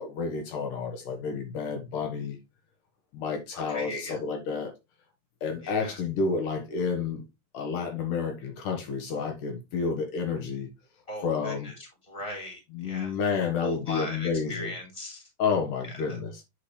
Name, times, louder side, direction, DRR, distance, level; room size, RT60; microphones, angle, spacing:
voice 1, 0.0-2.4 3.1-4.7 5.4-7.2 7.5-10.7 11.2-11.7 12.7-14.7 15.4-16.4, left 5 dB, 75° left, 2.8 m, -30 dB
voice 2, 3.5-4.2 5.6-6.0 11.1-11.7 12.1-13.1 13.6-15.2, left 1 dB, 10° left, 3.0 m, -38 dB
8.5 x 4.9 x 3.1 m
omnidirectional pair, 3.8 m